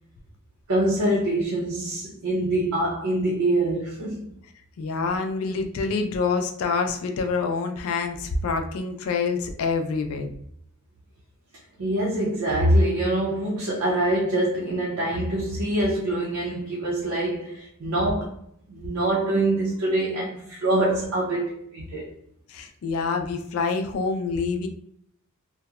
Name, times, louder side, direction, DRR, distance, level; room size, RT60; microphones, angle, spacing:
voice 1, 0.7-4.3 11.8-18.3 18.7-22.1, right 1 dB, 65° right, 0.5 m, -24 dB
voice 2, 4.8-10.3 22.5-24.7, left 4 dB, 70° left, 0.3 m, -26 dB
2.7 x 2.0 x 2.3 m
head